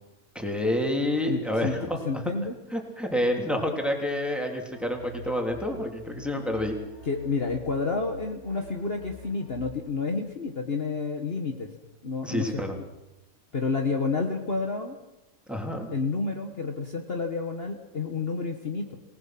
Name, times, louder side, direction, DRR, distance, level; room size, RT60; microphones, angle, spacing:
voice 1, 0.3-2.0 2.7-6.7 12.2-12.8 15.5-15.9, left 1 dB, ahead, 2 dB, 3.3 m, -28 dB
voice 2, 1.3-1.7 2.0-2.6 7.0-11.7 12.0-12.6 13.5-15.0 15.9-19.0, left 4 dB, 45° left, 3 dB, 1.7 m, -30 dB
sound 1, 4.7-9.9, left 2 dB, 85° right, 4.9 m, -46 dB
27.5 x 19.0 x 6.1 m, 0.95 s
omnidirectional pair, 1.5 m